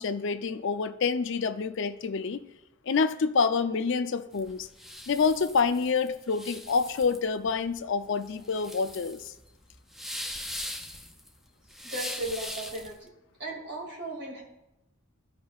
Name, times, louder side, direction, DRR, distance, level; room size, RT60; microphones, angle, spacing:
voice 1, 0.0-2.4 2.9-4.7 5.1-9.3, left 5 dB, 55° left, 10 dB, 0.5 m, -27 dB
sound 1, 4.3-13.0, left 1 dB, ahead, 0.3 m, -40 dB
voice 2, 11.8-13.1 13.4-14.4, right 1 dB, 50° right, -1 dB, 2.2 m, -36 dB
14.0 x 5.2 x 2.4 m, 0.88 s
head